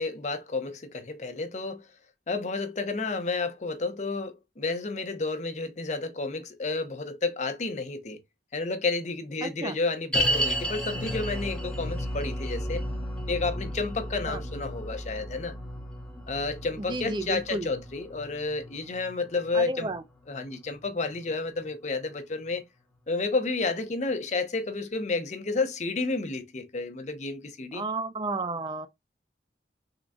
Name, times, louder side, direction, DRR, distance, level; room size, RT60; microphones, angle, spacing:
voice 1, 0.0-1.8 2.3-8.2 8.5-12.8 13.3-15.5 16.3-19.9 20.3-22.6 23.1-27.8, left 3 dB, 40° left, 0.6 m, -31 dB
voice 2, 9.4-9.8 14.3-14.4 16.8-17.7 19.5-20.0 27.7-28.9, right 2 dB, 25° right, 0.3 m, -32 dB
sound 1, 10.1-21.4 21.7-21.8 22.4-22.5, equal, 5° left, 0.7 m, -33 dB
3.8 x 3.5 x 2.2 m
head